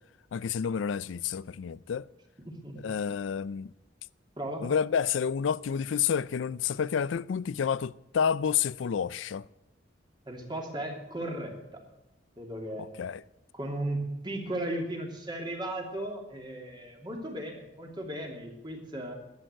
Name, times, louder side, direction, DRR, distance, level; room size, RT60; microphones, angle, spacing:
voice 1, 0.3-2.0 2.8-3.7 4.6-9.4 13.0-13.2, left 7 dB, 85° left, 0.4 m, -29 dB
voice 2, 2.4-2.8 4.4-4.7 10.3-11.6 12.4-12.8 13.5-19.2, right 1 dB, 25° right, 2.8 m, -36 dB
12.5 x 8.9 x 9.0 m
head